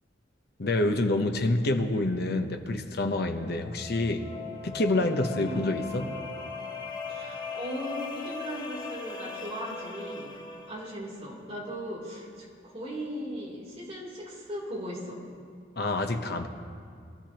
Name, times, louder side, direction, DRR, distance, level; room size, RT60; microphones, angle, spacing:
voice 1, 0.6-4.3 4.6-6.2 15.8-16.5, left 2 dB, 60° left, 6 dB, 0.9 m, -27 dB
sound 1, 3.4-11.1, left 4 dB, 25° left, 0.9 m, -39 dB
voice 2, 7.1-10.4 10.7-15.2, equal, 35° right, -5 dB, 3.2 m, -38 dB
23.0 x 13.5 x 3.0 m, 2.2 s
head